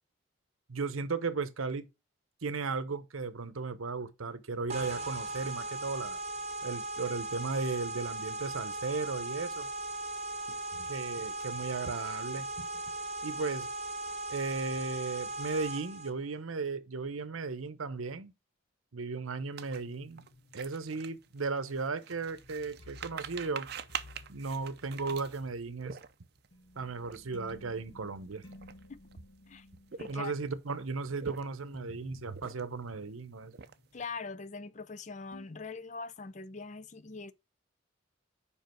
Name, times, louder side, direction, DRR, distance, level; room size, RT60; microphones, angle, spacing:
voice 1, 0.7-1.9 2.4-6.2 6.6-9.7 10.7-12.7 13.2-13.7 14.3-18.3 18.9-20.2 20.5-23.7 24.3-26.0 26.8-28.4 30.1-33.5, right 4 dB, 85° right, 0.8 m, -36 dB
sound 1, 4.7-16.1, right 2 dB, 30° right, 0.9 m, -38 dB
sound 2, 19.6-26.5 27.0-27.2 27.4-27.7 28.3-29.1 29.8-30.5 31.0-31.8 32.3-32.9 33.2-34.0, right 7 dB, 50° right, 0.5 m, -44 dB
sound 3, 19.7-34.9 35.3-35.5, left 2 dB, 60° left, 1.5 m, -56 dB
voice 2, 30.0-30.3 33.9-37.3, left 4 dB, 35° left, 0.5 m, -42 dB
5.3 x 5.0 x 5.7 m
head